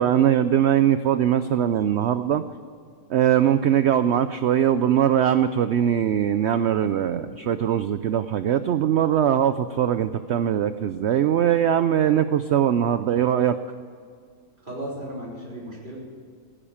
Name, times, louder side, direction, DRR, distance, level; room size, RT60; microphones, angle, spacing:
voice 1, 0.0-2.4 3.1-13.6, right 10 dB, 80° right, 12 dB, 0.6 m, -21 dB
voice 2, 14.6-16.0, right 1 dB, 30° right, -4 dB, 4.1 m, -35 dB
16.0 x 10.0 x 7.2 m, 2.1 s
omnidirectional pair, 1.7 m